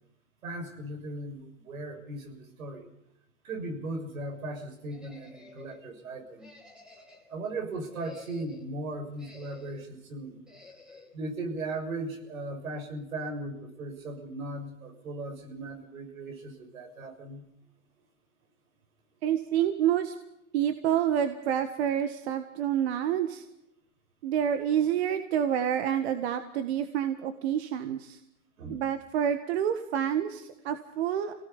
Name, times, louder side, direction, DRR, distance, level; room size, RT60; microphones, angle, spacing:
voice 1, 0.4-2.9 3.4-6.5 7.3-10.4 11.1-17.4 28.6-28.8, right 2 dB, 75° right, 4 dB, 6.6 m, -37 dB
sound 1, 4.9-5.8 6.4-7.4 7.8-8.7 9.2-9.9 10.5-11.1, left 3 dB, ahead, 2.8 m, -51 dB
voice 2, 19.2-20.1 20.5-23.4 24.2-28.2 28.7-31.3, right 9 dB, 50° right, 9 dB, 1.7 m, -28 dB
26.5 x 18.5 x 5.5 m, 0.81 s
hypercardioid pair, 140°, 41 cm